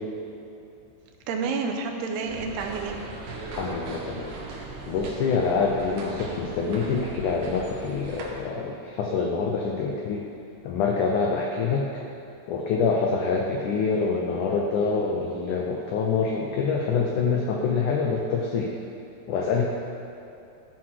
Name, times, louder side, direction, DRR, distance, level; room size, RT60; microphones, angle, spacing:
voice 1, 1.3-3.0, right 4 dB, 90° right, 2 dB, 2.8 m, -29 dB
sound 1, 2.2-8.3, right 3 dB, 65° right, 2.2 m, -38 dB
voice 2, 3.5-4.4 4.9-10.3 10.6-11.9 12.5-18.7 19.3-19.6, left 5 dB, 85° left, -1 dB, 1.8 m, -26 dB
13.5 x 4.7 x 5.7 m, 2.7 s
omnidirectional pair, 4.6 m